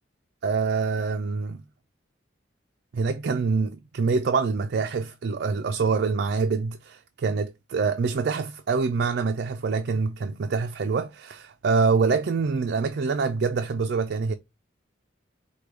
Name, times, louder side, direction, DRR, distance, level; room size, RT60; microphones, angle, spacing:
voice 1, 0.4-1.6 2.9-14.3, right 4 dB, 55° right, 0.4 m, -25 dB
5.0 x 2.2 x 4.5 m
head